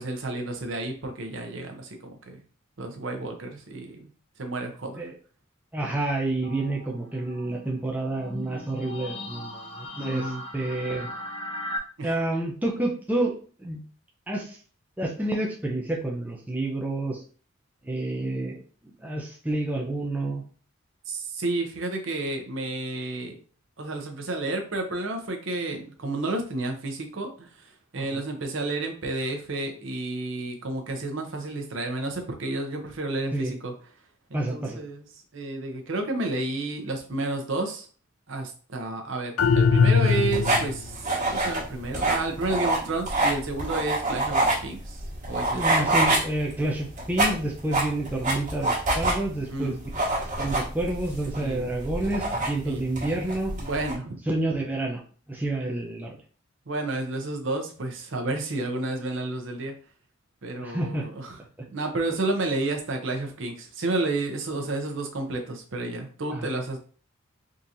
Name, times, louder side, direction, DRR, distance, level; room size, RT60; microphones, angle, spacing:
voice 1, 0.0-2.4 2.8-4.1 4.4-5.0 10.0-10.4 12.0-12.1 21.1-23.4 23.8-33.7 34.3-35.0 35.3-37.9 38.3-45.9 49.5-49.8 51.3-51.8 52.3-52.9 53.6-54.2 56.7-59.7 60.4-61.4 61.7-66.8, right 2 dB, 65° right, 4 dB, 0.7 m, -31 dB
voice 2, 5.7-11.1 12.0-13.8 14.3-14.6 15.0-17.2 17.8-18.6 18.8-20.4 28.0-28.2 33.3-33.6 34.3-34.8 45.5-49.9 50.2-53.5 54.3-55.0 55.3-56.2 60.6-61.1 66.3-66.5, right 2 dB, 10° right, 0 dB, 0.4 m, -29 dB
sound 1, 6.4-11.8, left 1 dB, 25° left, 0.9 m, -38 dB
sound 2, 39.4-40.8, left 5 dB, 90° left, 0.4 m, -20 dB
sound 3, 40.1-53.9, right 2 dB, 40° right, 1.3 m, -27 dB
3.7 x 2.8 x 2.5 m, 0.40 s
head